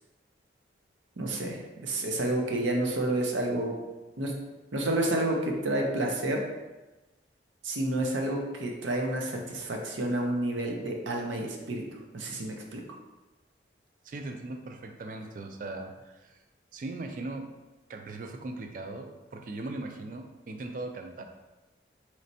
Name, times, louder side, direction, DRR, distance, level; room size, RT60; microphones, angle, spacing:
voice 1, 1.2-3.8 4.2-4.3 4.7-6.4 7.6-11.8 12.1-12.8, right 1 dB, 85° right, 1 dB, 0.6 m, -29 dB
voice 2, 14.0-16.4 16.7-17.5 17.9-21.2, right 2 dB, 45° right, 5 dB, 0.3 m, -39 dB
4.1 x 3.2 x 2.7 m, 1.1 s
head